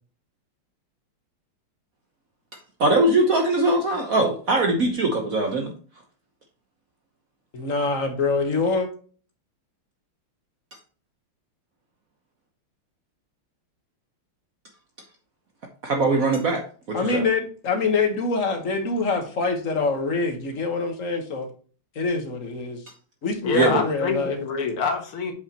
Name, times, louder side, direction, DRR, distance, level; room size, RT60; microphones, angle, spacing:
voice 1, 2.8-5.7 15.8-16.6 16.9-17.2 23.5-23.8, right 2 dB, 55° right, 1.1 m, -21 dB
voice 2, 7.5-8.9 16.9-21.5 21.9-22.8 23.2-24.4, left 4 dB, 40° left, 1.5 m, -25 dB
voice 3, 23.4-25.3, left 5 dB, 80° left, 2.3 m, -26 dB
7.9 x 6.0 x 2.9 m
omnidirectional pair, 2.4 m